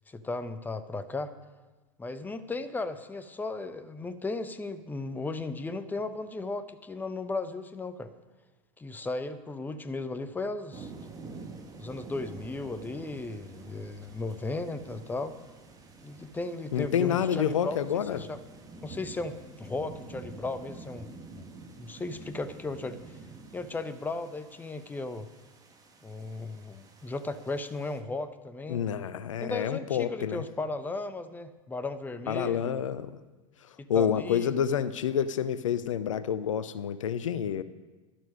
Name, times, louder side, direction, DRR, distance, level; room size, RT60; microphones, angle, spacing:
voice 1, 0.1-1.3 2.0-8.1 8.8-10.9 11.8-15.4 16.0-17.8 18.1-18.4 18.8-21.5 21.8-23.2 23.5-25.3 26.0-28.8 29.4-32.8 33.8-34.6, left 3 dB, 10° left, 12 dB, 0.8 m, -36 dB
sound 1, 10.7-28.0, right 3 dB, 20° right, 1.9 m, -48 dB
voice 2, 16.7-18.2 28.7-30.4 32.3-33.2 33.9-37.6, left 8 dB, 65° left, 14 dB, 0.6 m, -28 dB
12.0 x 12.0 x 5.3 m, 1.2 s
figure-of-eight pair, 85°, 18 cm